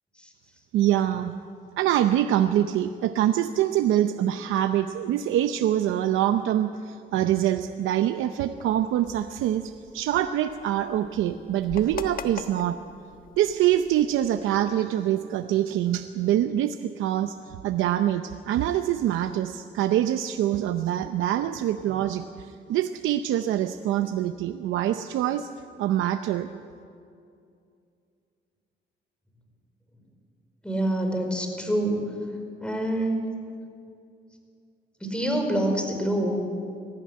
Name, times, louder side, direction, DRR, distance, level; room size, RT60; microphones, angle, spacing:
voice 1, 0.7-1.3 1.8-12.8 13.4-25.5 25.8-26.5, right 12 dB, 85° right, 9 dB, 0.7 m, -25 dB
sound 1, 8.6-14.6, left 5 dB, 45° left, 1.4 m, -43 dB
voice 2, 30.6-32.0 32.6-33.3 35.0-36.3, right 1 dB, 5° left, 3 dB, 4.8 m, -26 dB
19.0 x 15.0 x 9.5 m, 2.4 s
cardioid pair, 90°, 20 cm